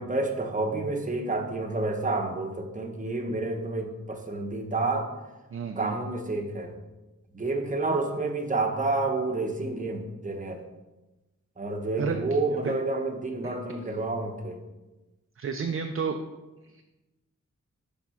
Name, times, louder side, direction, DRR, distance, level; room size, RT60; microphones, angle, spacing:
voice 1, 0.0-5.1 5.8-6.7 7.3-10.6 11.6-14.6, right 2 dB, 25° right, 3 dB, 0.9 m, -29 dB
voice 2, 5.5-6.0 12.0-12.7 13.4-13.5 15.4-16.2, right 5 dB, 50° right, 5 dB, 0.4 m, -31 dB
5.9 x 3.6 x 5.6 m, 1.1 s
wide cardioid pair, 85°, 29 cm